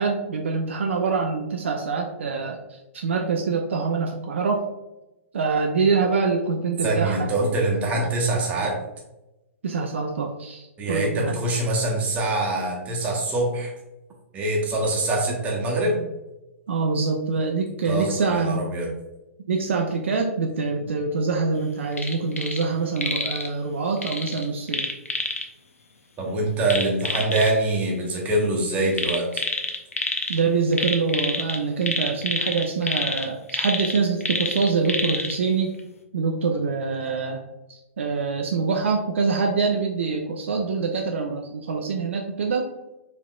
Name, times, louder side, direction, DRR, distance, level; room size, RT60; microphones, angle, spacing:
voice 1, 0.0-4.6 5.3-7.3 9.6-11.3 16.7-18.6 19.5-24.9 30.3-35.7 36.1-37.4 37.7-42.7, right 4 dB, 60° right, 2 dB, 0.4 m, -25 dB
voice 2, 6.8-8.8 10.8-13.7 14.3-16.0 17.9-18.9 26.2-29.4, right 2 dB, 20° right, -1 dB, 0.8 m, -24 dB
sound 1, 21.9-22.7 23.0-23.5 24.0-25.5 26.7-27.5 28.9-30.4 30.7-35.4 35.8-35.9, left 3 dB, 75° left, 0.5 m, -28 dB
4.1 x 2.6 x 2.3 m, 0.98 s
figure-of-eight pair, 115°, 8 cm